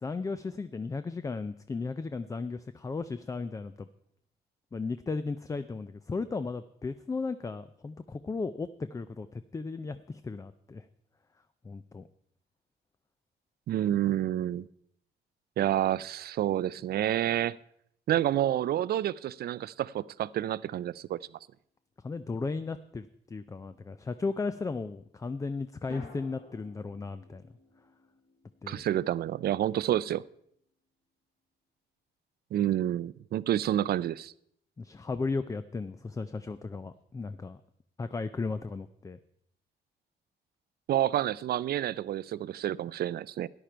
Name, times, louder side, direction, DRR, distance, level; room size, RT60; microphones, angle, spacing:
voice 1, 0.0-3.9 4.7-10.8 11.6-12.0 22.0-27.4 28.6-28.8 34.8-37.6 38.0-39.2, left 4 dB, 15° left, 12 dB, 0.4 m, -35 dB
voice 2, 13.7-14.7 15.6-17.6 18.1-21.2 28.7-30.2 32.5-34.3 40.9-43.5, right 12 dB, 55° right, 20 dB, 0.4 m, -29 dB
sound 1, 25.9-30.2, left 2 dB, 45° left, 3.1 m, -54 dB
13.5 x 10.0 x 4.5 m, 0.72 s
cardioid pair, 125°, 19 cm